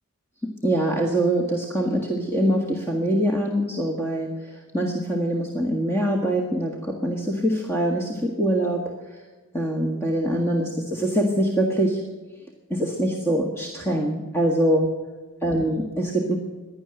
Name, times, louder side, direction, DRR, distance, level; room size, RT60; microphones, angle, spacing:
voice 1, 0.6-9.2 9.5-12.0 12.7-14.9 15.4-16.4, right 1 dB, 10° left, 0 dB, 1.7 m, -24 dB
16.5 x 11.0 x 7.8 m, 1.3 s
head